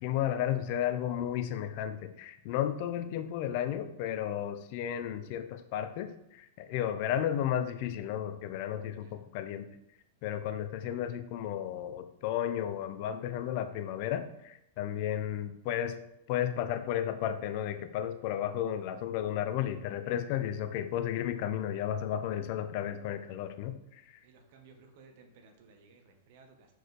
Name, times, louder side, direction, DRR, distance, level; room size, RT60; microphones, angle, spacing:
voice 1, 0.0-9.7 10.2-16.0 16.3-24.2, left 10 dB, 50° left, 9 dB, 0.6 m, -33 dB
voice 2, 24.2-26.7, right 4 dB, 55° right, 5 dB, 1.1 m, -58 dB
6.3 x 4.6 x 3.4 m, 0.79 s
hypercardioid pair, 100°, 0 cm